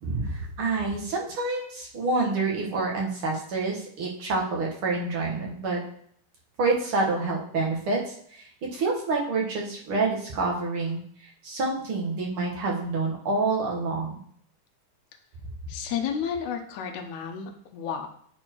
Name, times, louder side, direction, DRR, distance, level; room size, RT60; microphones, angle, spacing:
voice 1, 0.0-5.8 6.6-14.2, right 3 dB, 50° right, -2 dB, 1.7 m, -28 dB
voice 2, 15.7-18.1, left 7 dB, 75° left, 3 dB, 1.8 m, -32 dB
11.0 x 4.4 x 4.5 m, 0.63 s
omnidirectional pair, 4.4 m